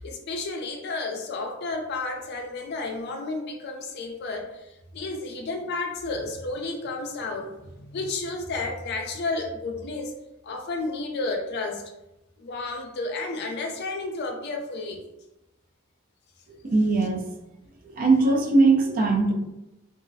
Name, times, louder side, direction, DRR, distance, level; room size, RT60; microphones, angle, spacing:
voice 1, 0.0-4.5 4.9-7.5 7.9-10.1 10.4-11.8 12.4-15.0, left 3 dB, 55° left, 3 dB, 0.4 m, -31 dB
voice 2, 16.6-17.2 17.9-19.3, right 3 dB, 45° right, 1 dB, 0.4 m, -20 dB
2.4 x 2.0 x 2.5 m, 0.92 s
head